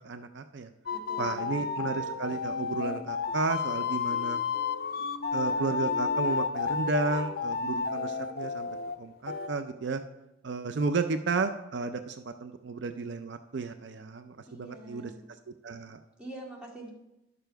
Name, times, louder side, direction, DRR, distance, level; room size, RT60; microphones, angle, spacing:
voice 1, 0.0-0.7 1.2-4.4 5.3-10.0 10.4-15.1 15.6-16.0, right 4 dB, 65° right, 9 dB, 0.5 m, -33 dB
sound 1, 0.9-9.0 9.3-9.5, left 5 dB, 50° left, 0.6 m, -31 dB
voice 2, 0.9-1.8 14.5-15.3 16.2-16.9, right 1 dB, 5° right, -4 dB, 2.0 m, -45 dB
11.0 x 6.9 x 4.6 m, 0.92 s
head